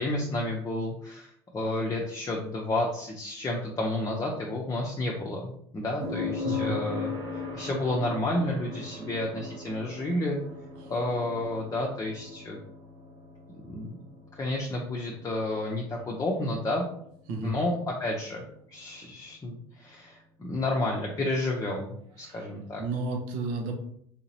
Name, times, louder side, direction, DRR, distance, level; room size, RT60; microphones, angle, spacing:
voice 1, 0.0-7.1 7.5-10.4 10.9-12.6 13.6-14.0 14.3-16.9 17.4-18.4 18.7-22.8, left 1 dB, 25° left, -1 dB, 0.6 m, -31 dB
sound 1, 6.0-19.9 22.1-22.2, left 4 dB, 85° right, 1.4 m, -40 dB
voice 2, 6.4-6.7 10.8-10.9 17.3-17.5 22.2-22.4 22.8-23.7, right 3 dB, 65° right, 3 dB, 0.8 m, -32 dB
3.5 x 2.8 x 2.8 m, 0.69 s
hypercardioid pair, 75°, 14 cm